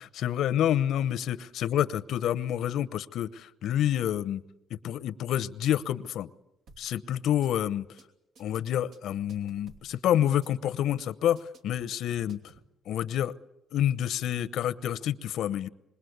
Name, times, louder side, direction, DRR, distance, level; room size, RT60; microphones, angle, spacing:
voice 1, 0.1-4.4 4.7-6.3 6.8-7.8 8.4-12.4 12.9-13.3 13.7-15.7, left 11 dB, 80° left, 15 dB, 0.8 m, -28 dB
sound 1, 6.7-6.9 7.2-7.5 7.8-8.0 8.3-9.9 10.2-10.5 10.8-11.0 11.3-12.7, right 3 dB, 75° right, 2.8 m, -56 dB
26.5 x 22.0 x 8.1 m, 0.93 s
cardioid pair, 90°, 0 cm